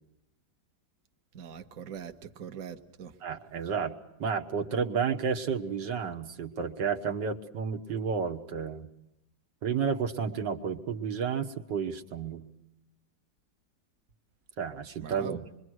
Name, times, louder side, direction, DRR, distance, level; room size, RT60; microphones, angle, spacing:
voice 1, 1.3-3.1 15.0-15.4, right 8 dB, 55° right, 6 dB, 1.4 m, -42 dB
voice 2, 3.2-8.9 9.6-12.5 14.6-15.5, right 6 dB, 85° right, 3 dB, 1.9 m, -31 dB
25.5 x 23.0 x 6.2 m, 0.89 s
omnidirectional pair, 1.9 m